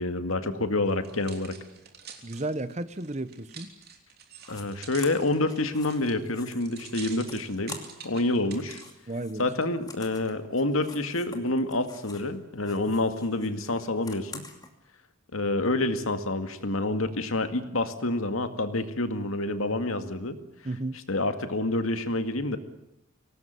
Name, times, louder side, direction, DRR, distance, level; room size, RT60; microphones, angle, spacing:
voice 1, 0.0-1.5 4.5-7.8 8.0-8.8 9.4-14.5 15.3-20.4 21.1-22.6, left 2 dB, 85° left, 8 dB, 2.1 m, -28 dB
sound 1, 0.9-8.9 9.5-9.6, right 7 dB, 50° right, 3.4 m, -47 dB
voice 2, 2.2-3.7 9.1-9.5 20.6-21.0, right 2 dB, 35° right, 14 dB, 1.0 m, -33 dB
sound 2, 4.4-4.6 5.0-8.2 8.5-12.3 12.6-14.7, left 4 dB, 20° left, 2.6 m, -47 dB
24.5 x 18.5 x 9.4 m, 0.81 s
head